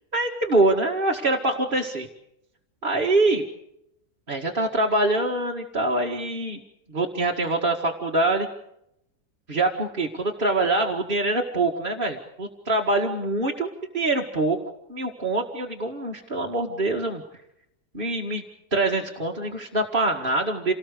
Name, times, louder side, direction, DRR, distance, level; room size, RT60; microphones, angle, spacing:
voice 1, 0.1-2.1 2.8-3.4 4.3-6.6 6.9-8.5 9.5-14.6 14.9-17.2 17.9-18.4 18.7-20.7, right 2 dB, 30° right, -2 dB, 2.1 m, -24 dB
28.0 x 19.5 x 6.7 m, 0.79 s
omnidirectional pair, 1.7 m